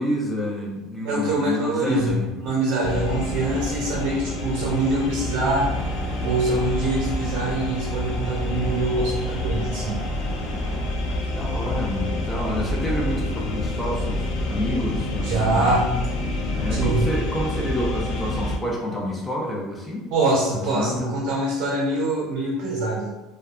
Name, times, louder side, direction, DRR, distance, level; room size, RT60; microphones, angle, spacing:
voice 1, 0.0-2.3 11.0-15.8 16.5-20.1 20.5-21.1, left 1 dB, 10° left, -2 dB, 0.6 m, -29 dB
voice 2, 1.0-5.7 6.2-10.0 15.2-15.9 16.7-17.1 20.1-23.1, right 2 dB, 65° right, -3 dB, 0.5 m, -24 dB
sound 1, 2.8-18.6, left 1 dB, 70° left, 0.4 m, -28 dB
sound 2, 5.4-10.9, right 1 dB, 20° right, 1.1 m, -35 dB
2.6 x 2.2 x 2.3 m, 1.0 s
cardioid pair, 130°, 0 cm